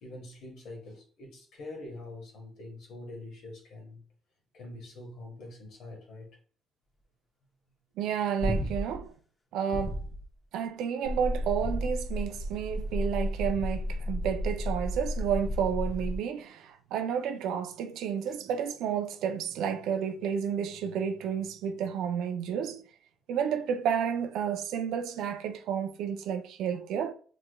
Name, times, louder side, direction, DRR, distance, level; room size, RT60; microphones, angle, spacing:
voice 1, 0.0-4.0 4.5-6.3, left 2 dB, 80° left, 1.2 m, -44 dB
voice 2, 8.0-9.1 9.5-10.0 10.5-22.8 23.3-27.1, right 8 dB, 90° right, 0.4 m, -31 dB
sound 1, 8.4-9.1 9.7-10.2 11.6-12.3 13.5-14.0 15.4-15.9 18.3-18.4, equal, 30° left, 0.7 m, -35 dB
sound 2, 11.0-16.2, equal, 40° right, 0.8 m, -33 dB
3.4 x 3.0 x 2.2 m
cardioid pair, 90°, 0 cm